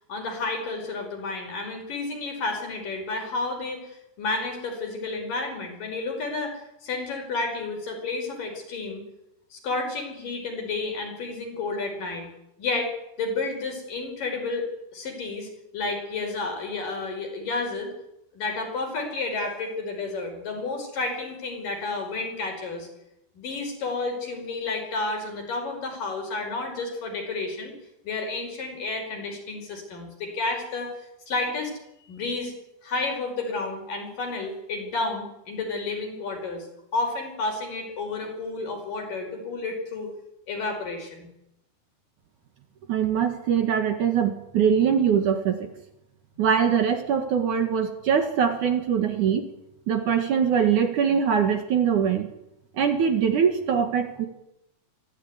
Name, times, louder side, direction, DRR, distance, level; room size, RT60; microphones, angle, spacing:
voice 1, 0.1-9.0 9.5-12.3 12.6-12.9 13.2-17.9 18.3-22.9 23.3-27.7 28.0-30.9 31.3-31.7 32.1-32.5 32.8-36.7 36.9-40.1 40.5-41.3 46.4-46.5, left 3 dB, 55° left, 3 dB, 6.7 m, -31 dB
voice 2, 42.9-45.7 46.4-49.5 49.9-52.3 52.8-54.3, right 7 dB, 60° right, 6 dB, 2.8 m, -22 dB
23.0 x 15.5 x 9.7 m, 0.85 s
omnidirectional pair, 4.5 m